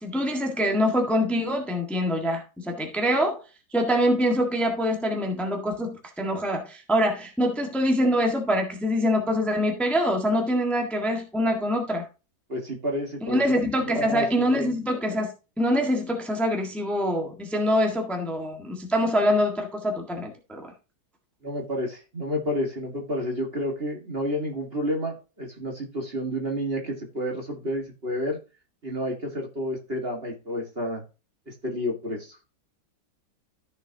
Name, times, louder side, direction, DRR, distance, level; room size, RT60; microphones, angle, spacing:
voice 1, 0.0-3.4 3.7-12.0 13.2-15.3 15.6-20.7, equal, ahead, 2 dB, 1.5 m, -24 dB
voice 2, 12.5-13.4 13.9-14.7 21.4-28.4 28.8-31.0 31.5-32.4, equal, 35° right, 2 dB, 2.0 m, -30 dB
14.0 x 6.3 x 2.8 m, 0.31 s
omnidirectional pair, 2.0 m